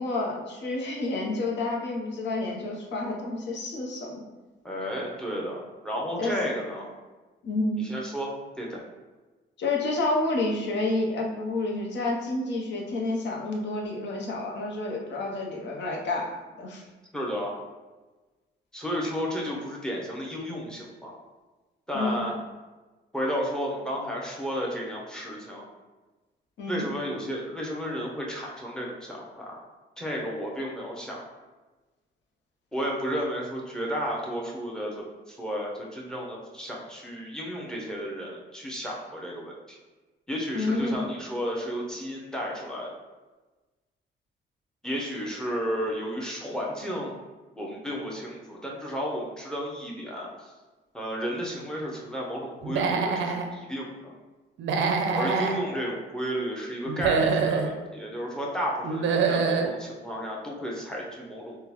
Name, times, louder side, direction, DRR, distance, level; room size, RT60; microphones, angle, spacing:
voice 1, 0.0-4.2 6.2-6.4 7.4-7.8 9.6-16.3 16.6-16.8 21.9-22.2 26.6-26.9 40.5-41.2, left 2 dB, 65° left, 0 dB, 0.8 m, -29 dB
voice 2, 4.6-6.9 7.8-8.3 8.6-8.8 17.1-17.6 18.7-21.1 21.9-22.4 23.1-25.6 26.7-29.6 30.0-31.2 32.7-39.8 40.3-42.9 44.8-47.1 47.6-50.5 50.9-54.1 55.1-61.6, equal, 5° left, -3 dB, 0.8 m, -32 dB
Human voice / Animal, 52.6-53.5 54.6-55.6 56.8-57.7 58.8-59.7, right 5 dB, 70° right, 0.4 m, -25 dB
3.6 x 2.2 x 2.9 m, 1.2 s
cardioid pair, 90°, 20 cm